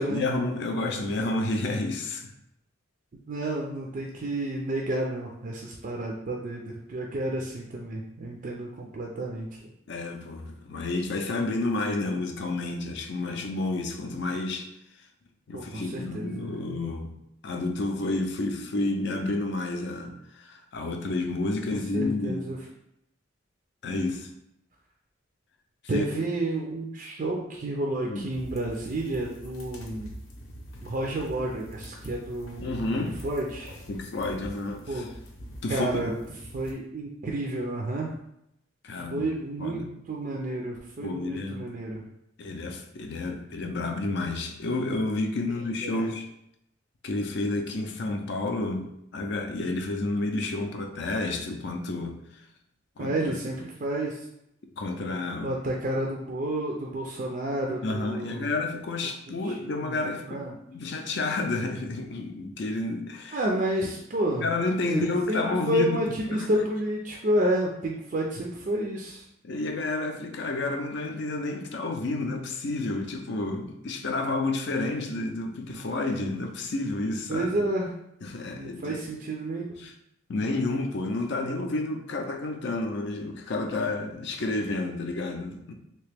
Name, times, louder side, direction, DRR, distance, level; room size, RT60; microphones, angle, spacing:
voice 1, 0.0-2.3 9.9-14.7 15.5-17.2 17.4-22.4 23.8-24.3 25.9-26.1 28.1-28.3 32.6-33.2 33.9-35.1 35.6-36.0 38.8-39.3 39.6-39.9 41.0-41.7 42.4-46.3 47.0-52.4 53.0-53.4 54.8-55.5 57.8-60.4 60.7-63.4 64.4-66.5 69.4-77.6 78.2-79.0 79.8-79.9 80.3-85.7, left 2 dB, 55° left, 5 dB, 0.4 m, -30 dB
voice 2, 3.3-6.6 6.9-9.5 15.5-16.5 21.9-22.6 25.9-30.1 30.8-33.7 34.9-35.1 35.7-36.1 36.5-38.1 38.9-39.8 40.1-42.0 45.8-46.1 53.0-54.2 55.4-58.5 59.4-60.0 60.3-60.5 63.3-64.5 64.8-69.3 77.3-77.9 78.5-79.7, right 1 dB, 40° right, -1 dB, 0.4 m, -30 dB
sound 1, 28.3-36.7, equal, 90° left, 0.8 m, -44 dB
3.2 x 2.9 x 3.4 m, 0.80 s
head